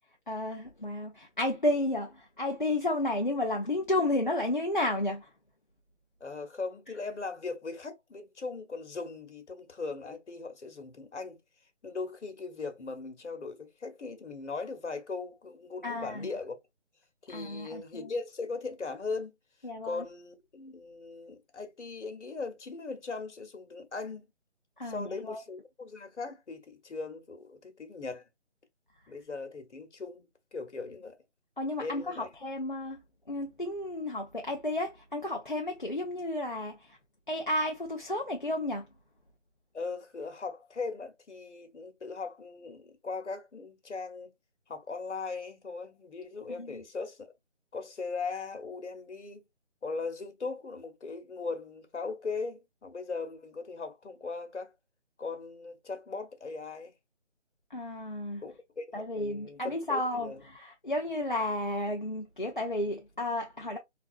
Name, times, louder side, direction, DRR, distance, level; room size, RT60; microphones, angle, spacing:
voice 1, 0.3-5.3 15.8-16.3 17.3-18.1 19.6-20.0 24.8-25.4 31.6-33.0 33.3-37.0 37.3-38.9 46.5-46.8 57.7-58.4 58.9-63.8, left 1 dB, 45° left, 0.4 m, -32 dB
voice 2, 6.2-11.4 11.8-16.6 17.2-19.3 19.8-24.2 24.8-28.2 29.1-31.2 31.8-32.3 39.7-44.3 44.7-47.3 47.7-49.4 49.8-54.7 55.2-56.9 58.4-60.4, left 4 dB, 75° left, 1.0 m, -39 dB
3.3 x 2.4 x 2.4 m
figure-of-eight pair, 180°, 36 cm